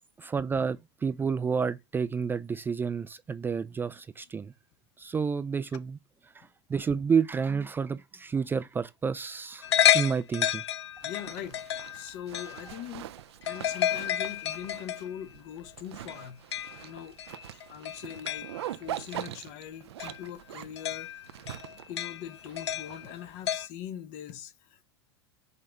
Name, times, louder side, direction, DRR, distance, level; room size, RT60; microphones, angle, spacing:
voice 1, 0.2-4.5 5.0-6.0 6.3-9.7 9.9-10.6, right 6 dB, 15° right, 0.3 m, -30 dB
sound 1, 9.6-12.8 13.5-15.1 16.1-16.9 17.2-18.7 19.1-19.2 20.0-20.3 20.8-23.2 23.5-23.7, left 11 dB, 85° left, 0.4 m, -30 dB
voice 2, 11.0-13.1 13.4-16.4 16.8-17.2 17.5-21.1 21.5-24.8, left 10 dB, 55° left, 0.9 m, -42 dB
Zipper (clothing), 11.0-23.5, right 12 dB, 75° right, 0.5 m, -43 dB
5.5 x 3.2 x 5.4 m
hypercardioid pair, 100°, 14 cm